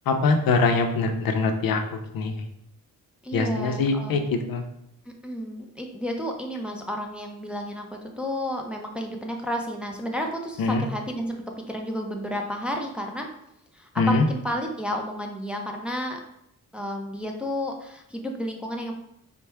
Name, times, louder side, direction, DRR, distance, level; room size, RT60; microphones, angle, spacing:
voice 1, 0.1-1.8 2.1-2.3 3.3-4.6 10.6-10.8 14.0-14.3, left 3 dB, 75° left, 5 dB, 0.6 m, -23 dB
voice 2, 3.2-4.2 5.2-13.3 13.7-16.2 16.7-18.9, equal, 5° right, 1 dB, 0.5 m, -31 dB
4.3 x 2.2 x 3.4 m, 0.78 s
cardioid pair, 90°, 35 cm